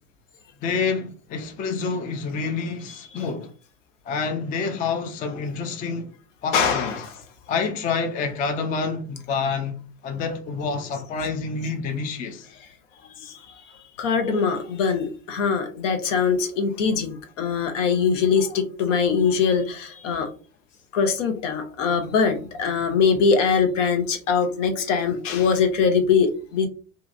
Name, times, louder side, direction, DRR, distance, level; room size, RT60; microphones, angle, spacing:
voice 1, 0.6-3.5 4.1-6.1 6.4-7.0 7.5-12.5, left 5 dB, 20° left, 0.3 m, -28 dB
voice 2, 6.5-7.2 13.2-13.5 14.0-20.3 20.9-26.7, left 6 dB, 65° left, 0.7 m, -22 dB
2.7 x 2.5 x 2.5 m
figure-of-eight pair, 70°, 40 cm